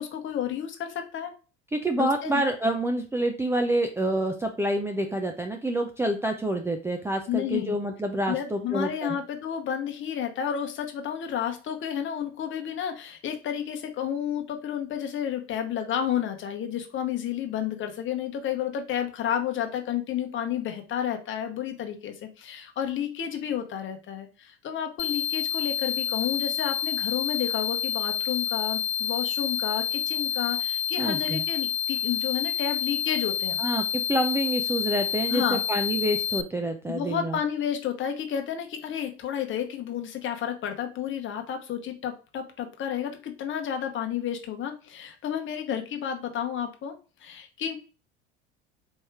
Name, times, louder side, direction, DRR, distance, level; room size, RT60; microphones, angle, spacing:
voice 1, 0.0-1.3 2.0-2.4 7.3-7.8 8.3-33.6 35.3-35.6 36.9-46.9 47.2-47.8, left 9 dB, 35° left, 5 dB, 1.0 m, -31 dB
voice 2, 1.7-9.2 31.0-31.4 33.6-37.4, right 1 dB, 10° right, 4 dB, 0.4 m, -27 dB
sound 1, 25.0-36.4, left 9 dB, 75° left, 0.5 m, -28 dB
4.5 x 2.7 x 3.5 m, 0.35 s
hypercardioid pair, 75°, 33 cm